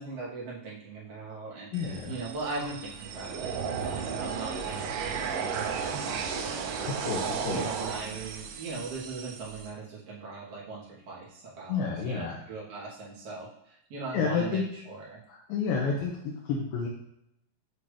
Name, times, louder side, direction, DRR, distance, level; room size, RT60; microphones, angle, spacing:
voice 1, 0.0-1.7 2.1-7.1 7.5-15.2, right 4 dB, 55° right, -6 dB, 2.1 m, -39 dB
voice 2, 1.7-2.1 6.9-7.7 11.7-12.4 14.1-14.6 15.3-16.9, left 5 dB, 85° left, -3 dB, 2.6 m, -30 dB
sound 1, 1.7-9.7, right 6 dB, 75° right, 2.1 m, -34 dB
8.2 x 2.8 x 4.9 m, 0.77 s
omnidirectional pair, 4.0 m